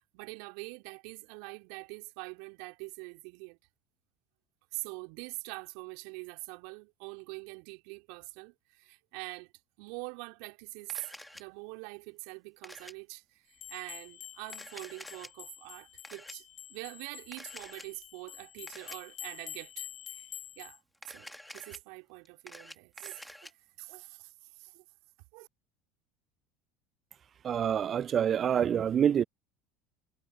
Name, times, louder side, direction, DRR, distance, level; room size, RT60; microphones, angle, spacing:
voice 1, 0.0-3.6 4.7-9.5 9.8-20.3 20.6-20.8 21.1-24.8 25.3-25.5, right 32 dB, 65° right, 3.8 m, -44 dB
Camera, 10.9-11.4 12.6-12.9 14.4-15.3 16.0-16.3 17.3-17.9 18.7-19.0 20.9-21.8 22.3-23.5, left 1 dB, 5° left, 2.2 m, -48 dB
sound 1, 13.6-20.8, left 11 dB, 45° left, 1.5 m, -47 dB
voice 2, 27.4-29.2, right 8 dB, 40° right, 0.3 m, -26 dB
hypercardioid pair, 75°, 0 cm